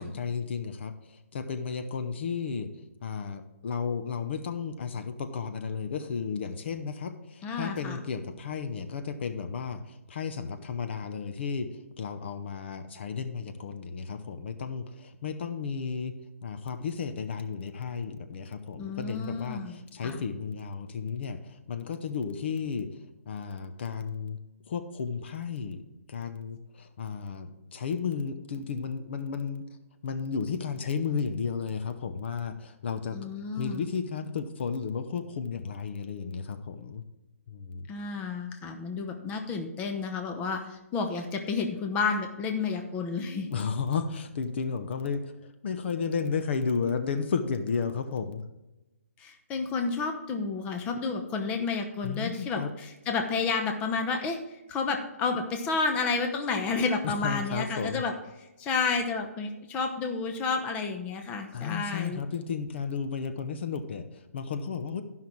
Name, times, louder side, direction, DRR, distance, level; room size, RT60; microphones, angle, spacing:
voice 1, 0.0-2.7 3.0-11.7 12.0-16.2 16.4-24.4 24.7-25.8 26.1-29.6 30.0-33.2 33.6-37.0 37.5-37.9 43.5-48.4 52.0-52.7 57.0-58.0 61.5-65.0, left 6 dB, 50° left, 8 dB, 0.8 m, -33 dB
voice 2, 7.4-8.0 18.8-20.2 33.1-33.9 37.9-43.5 49.2-58.1 58.4-62.2, left 4 dB, 15° left, 4 dB, 0.9 m, -31 dB
12.5 x 5.7 x 4.5 m, 1.0 s
hypercardioid pair, 150°, 8 cm